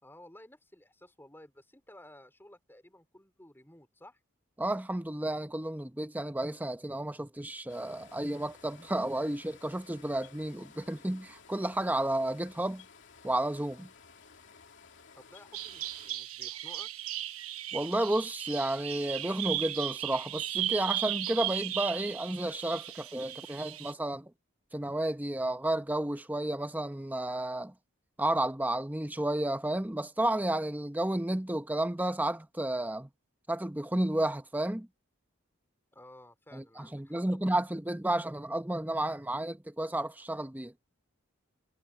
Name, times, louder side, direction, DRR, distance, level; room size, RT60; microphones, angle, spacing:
voice 1, 0.0-4.2 15.1-16.9 35.9-37.5, left 1 dB, 10° left, 4.2 m, -54 dB
voice 2, 4.6-12.8 13.2-13.9 17.7-24.3 24.7-27.7 28.2-33.1 33.5-34.9 36.5-40.7, right 1 dB, 10° right, 0.7 m, -32 dB
sound 1, 7.7-16.1, left 5 dB, 60° left, 2.6 m, -56 dB
Bird vocalization bird call bird song, 15.5-23.9, right 13 dB, 85° right, 1.0 m, -36 dB
head